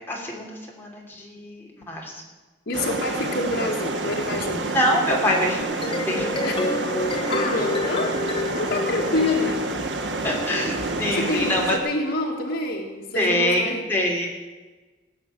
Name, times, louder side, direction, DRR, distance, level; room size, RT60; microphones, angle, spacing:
voice 1, 0.1-2.2 4.7-5.7 6.0-6.4 10.2-11.7 13.1-14.3, left 1 dB, 10° left, -2 dB, 2.9 m, -25 dB
voice 2, 2.7-4.7 6.4-8.2 8.6-9.6 11.1-13.9, left 2 dB, 75° left, -2 dB, 1.6 m, -27 dB
sound 1, 2.7-11.8, right 2 dB, 75° right, 1.5 m, -28 dB
sound 2, 5.6-10.0, left 2 dB, 25° left, 1.0 m, -29 dB
17.5 x 6.1 x 8.9 m, 1.2 s
head